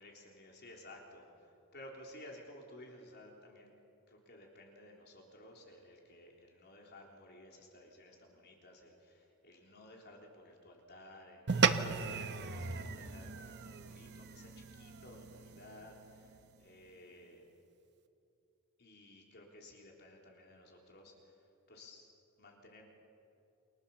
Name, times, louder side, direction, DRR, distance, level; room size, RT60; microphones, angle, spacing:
voice 1, 0.0-3.7 4.1-17.5 18.8-21.4 21.7-22.1 22.4-22.8, left 1 dB, 50° left, 0 dB, 3.6 m, -56 dB
sound 1, 11.5-16.1, right 5 dB, 50° right, 1.1 m, -35 dB
29.0 x 26.0 x 7.1 m, 2.7 s
head